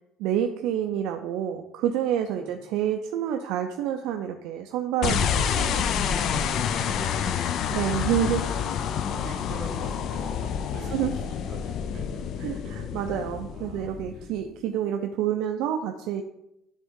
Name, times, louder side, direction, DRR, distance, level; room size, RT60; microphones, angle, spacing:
voice 1, 0.2-5.9 7.7-8.4 10.9-11.1 12.4-16.2, right 10 dB, 75° right, 5 dB, 0.4 m, -28 dB
sound 1, 5.0-14.4, left 7 dB, 50° left, 0.4 m, -28 dB
voice 2, 6.1-7.9 8.2-14.3, right 3 dB, 50° right, 1 dB, 1.2 m, -46 dB
sound 2, 8.4-14.9, left 2 dB, 15° left, 1.2 m, -51 dB
9.7 x 3.5 x 3.7 m, 0.85 s
cardioid pair, 155°, 0 cm